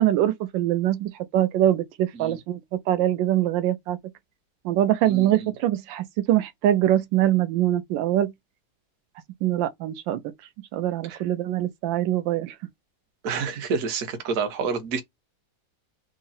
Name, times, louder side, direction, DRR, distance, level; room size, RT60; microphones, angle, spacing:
voice 1, 0.0-2.6 2.9-4.0 4.6-8.3 9.4-10.2 10.7-12.5, right 12 dB, 85° right, 1.3 m, -23 dB
voice 2, 5.0-5.5 11.1-11.2 13.2-15.0, right 5 dB, 55° right, 1.1 m, -29 dB
3.7 x 2.0 x 4.0 m
omnidirectional pair, 2.0 m